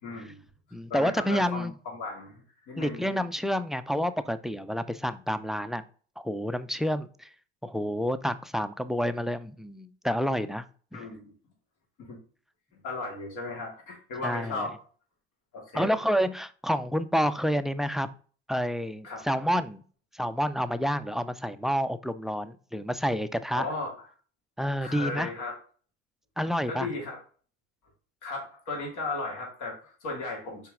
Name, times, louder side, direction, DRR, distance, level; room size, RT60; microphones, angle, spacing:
voice 1, 0.0-0.4 0.9-3.0 10.9-11.3 12.0-12.2 12.8-14.7 15.5-16.0 19.0-19.2 23.5-23.9 24.8-25.6 26.7-27.2 28.2-30.7, left 3 dB, 65° left, -1 dB, 2.7 m, -36 dB
voice 2, 0.7-1.7 2.8-5.8 6.2-7.3 7.6-10.7 10.9-11.1 14.2-14.7 15.7-18.1 18.5-19.8 20.1-23.7 24.6-25.3 26.4-26.9, equal, ahead, 13 dB, 0.4 m, -29 dB
5.6 x 4.6 x 3.7 m, 0.41 s
hypercardioid pair, 75°, 34 cm